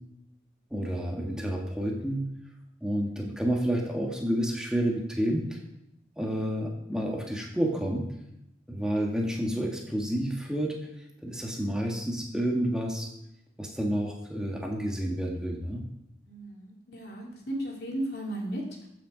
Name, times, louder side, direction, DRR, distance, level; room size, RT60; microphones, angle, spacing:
voice 1, 0.7-2.2 2.8-5.6 6.2-8.0 8.7-10.9 11.2-13.1 13.6-15.8, equal, 5° right, -1 dB, 1.5 m, -29 dB
voice 2, 16.2-18.9, right 1 dB, 70° left, -1 dB, 2.8 m, -35 dB
14.5 x 6.5 x 5.1 m, 0.82 s
head